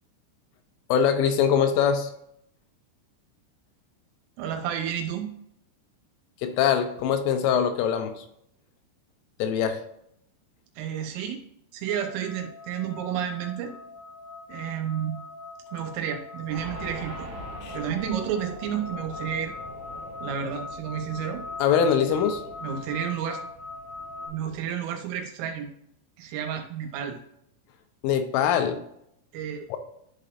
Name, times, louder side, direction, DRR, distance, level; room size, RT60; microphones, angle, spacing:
voice 1, 0.9-2.1 6.4-8.3 9.4-9.8 17.6-17.8 21.6-22.4 28.0-28.8 29.7-29.8, left 8 dB, 80° left, 7 dB, 3.1 m, -23 dB
voice 2, 4.4-5.3 10.8-11.4 11.7-13.7 14.5-15.2 15.7-17.3 17.7-19.5 20.2-21.4 22.6-23.4 24.3-25.7 26.2-27.2 29.3-29.7, right 8 dB, 80° right, 4 dB, 3.6 m, -31 dB
sound 1, 11.9-24.3, left 3 dB, 55° left, 2.3 m, -41 dB
sound 2, 16.5-24.6, right 1 dB, 55° right, 2.8 m, -44 dB
11.5 x 4.1 x 2.6 m, 0.74 s
omnidirectional pair, 6.0 m